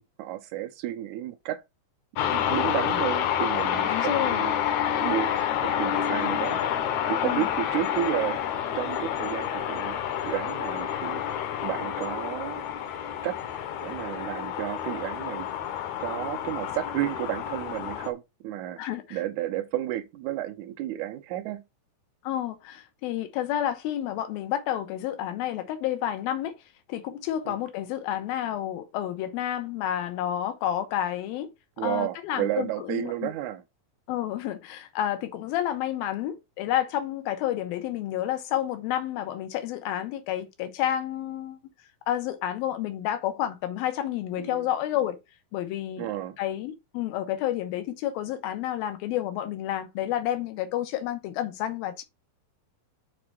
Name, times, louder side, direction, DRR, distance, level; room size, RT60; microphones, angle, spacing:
voice 1, 0.0-1.6 2.2-4.5 5.0-5.4 5.6-6.8 7.1-8.4 8.7-10.0 10.2-11.2 11.6-12.6 13.2-13.4 13.8-15.5 16.0-21.6 27.5-27.6 31.8-33.6 44.4-44.7 46.0-46.4, right 13 dB, 85° right, 1.7 m, -32 dB
sound 1, 2.2-18.1, left 10 dB, 70° left, 1.8 m, -29 dB
voice 2, 3.8-4.5 7.2-7.5 18.8-19.2 22.2-26.5 26.9-31.5 31.8-33.3 34.1-41.6 42.1-45.2 45.5-46.1 46.4-52.0, left 12 dB, 90° left, 2.8 m, -30 dB
6.6 x 4.2 x 4.7 m
omnidirectional pair, 4.2 m